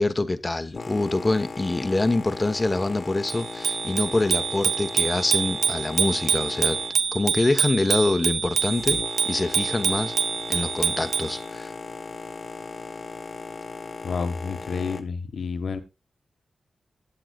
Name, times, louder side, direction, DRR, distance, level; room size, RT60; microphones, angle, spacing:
voice 1, 0.0-6.8 7.1-9.0 9.2-10.1 10.5-11.7, left 2 dB, 25° left, 1.1 m, -25 dB
Boat Water vehicle, 0.7-15.0, left 4 dB, 45° left, 1.3 m, -38 dB
Bicycle bell, 3.3-11.4, right 6 dB, 90° right, 0.7 m, -26 dB
voice 2, 14.0-15.8, left 5 dB, 75° left, 1.5 m, -29 dB
17.0 x 8.0 x 2.4 m
cardioid pair, 70°, 0 cm